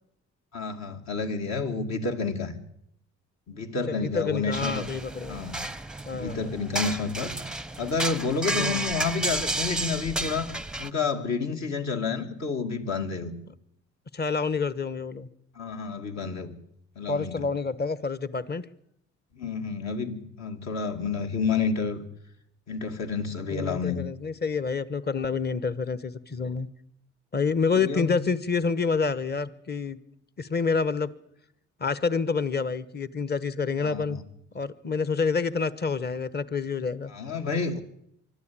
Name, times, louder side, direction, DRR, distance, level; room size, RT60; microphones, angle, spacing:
voice 1, 0.5-2.6 3.5-4.9 5.3-5.6 6.1-7.3 7.8-10.5 10.8-13.4 15.5-16.5 17.0-17.5 19.3-22.0 22.7-24.1 27.7-28.2 33.8-34.2 37.1-37.8, left 4 dB, 65° left, 5 dB, 2.7 m, -30 dB
voice 2, 3.9-5.4 6.0-6.5 8.5-8.9 14.1-15.3 17.1-18.6 23.5-26.7 27.3-30.0 30.4-31.1 31.8-34.2 34.5-37.1, left 5 dB, 35° left, 16 dB, 1.1 m, -28 dB
sound 1, 4.5-10.9, right 2 dB, 5° right, 0.7 m, -32 dB
24.0 x 12.0 x 8.8 m, 0.75 s
cardioid pair, 90°, 30 cm